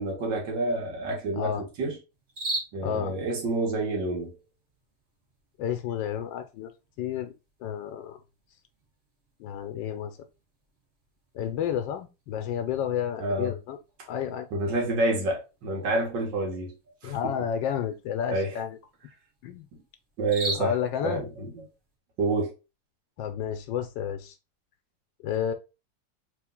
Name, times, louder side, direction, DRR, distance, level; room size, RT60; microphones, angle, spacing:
voice 1, 0.0-1.9 2.7-4.4 13.2-13.5 14.5-16.7 17.0-17.3 18.3-18.5 20.2-20.7 21.0-21.6 22.2-22.5, right 2 dB, 75° right, 1.9 m, -28 dB
voice 2, 1.3-1.7 2.8-3.1 5.6-6.7 7.0-7.3 7.6-8.2 9.4-10.2 11.3-13.8 14.1-14.5 17.0-18.8 19.4-19.6 20.5-21.2 23.2-24.3 25.2-25.5, left 9 dB, 85° left, 1.3 m, -31 dB
sound 1, 2.1-22.0, right 2 dB, 40° right, 1.5 m, -44 dB
3.5 x 3.1 x 3.6 m
omnidirectional pair, 2.0 m